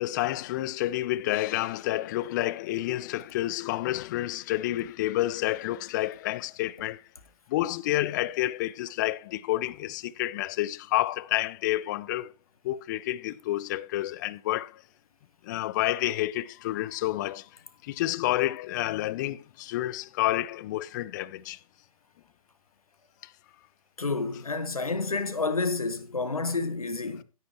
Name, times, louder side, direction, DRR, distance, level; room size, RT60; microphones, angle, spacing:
voice 1, 0.0-7.0 7.5-12.3 12.6-14.8 15.4-17.5 17.8-21.6 23.2-23.3, left 15 dB, 30° left, 0.5 m, -29 dB
voice 2, 24.0-27.2, left 3 dB, 80° left, 1.4 m, -29 dB
12.0 x 10.5 x 3.1 m
figure-of-eight pair, 115°, 18 cm